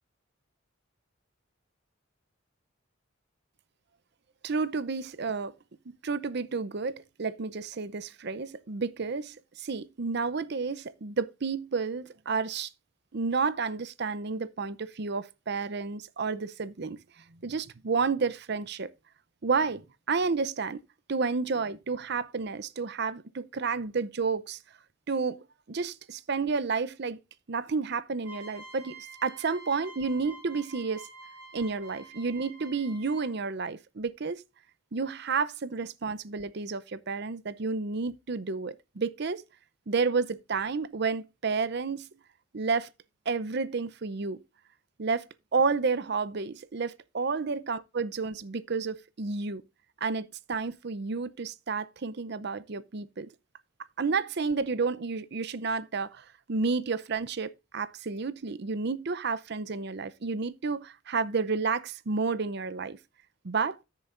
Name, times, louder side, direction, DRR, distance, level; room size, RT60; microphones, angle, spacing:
voice 1, 4.4-5.5 5.9-12.7 13.1-18.9 19.4-20.8 21.1-24.6 25.1-27.2 27.5-31.1 31.5-34.4 34.9-39.4 39.9-42.1 42.5-42.9 43.3-44.4 45.0-45.3 45.5-49.6 50.0-53.3 54.0-63.0 63.4-63.8, right 4 dB, 55° right, 0.6 m, -31 dB
sound 1, 28.2-33.5, right 2 dB, 10° right, 3.8 m, -48 dB
13.0 x 6.9 x 2.6 m
head